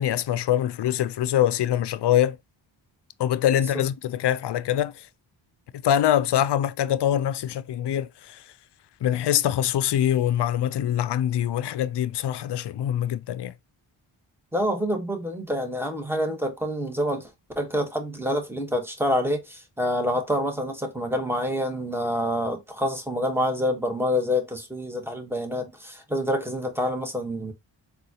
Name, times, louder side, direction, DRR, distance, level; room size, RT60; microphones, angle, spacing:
voice 1, 0.0-2.4 3.2-5.1 5.8-8.4 9.0-13.5, left 11 dB, 60° left, 0.5 m, -24 dB
voice 2, 14.5-17.3 17.6-27.5, equal, 5° right, 1.0 m, -27 dB
3.9 x 2.4 x 2.7 m
cardioid pair, 60°, 49 cm